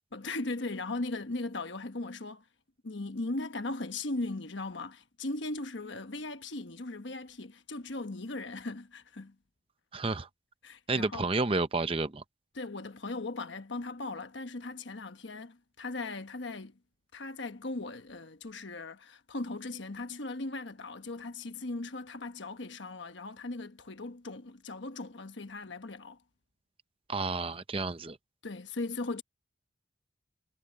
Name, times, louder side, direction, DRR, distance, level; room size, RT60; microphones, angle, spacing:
voice 1, 0.1-2.4 2.8-9.3 10.6-11.3 12.5-16.8 17.1-26.2 28.4-29.2, left 2 dB, 65° left, 1.3 m, -38 dB
voice 2, 9.9-10.3 10.9-12.2 27.1-28.2, right 3 dB, 30° right, 0.7 m, -30 dB
head